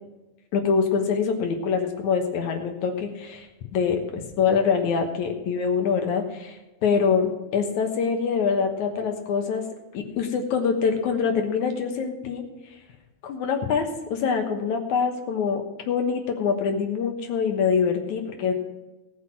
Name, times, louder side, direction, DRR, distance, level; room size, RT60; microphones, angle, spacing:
voice 1, 0.5-3.5 3.7-6.6 6.8-9.6 9.9-12.4 13.2-18.5, left 6 dB, 65° left, 4 dB, 2.1 m, -24 dB
18.0 x 6.1 x 6.1 m, 1.1 s
omnidirectional pair, 4.6 m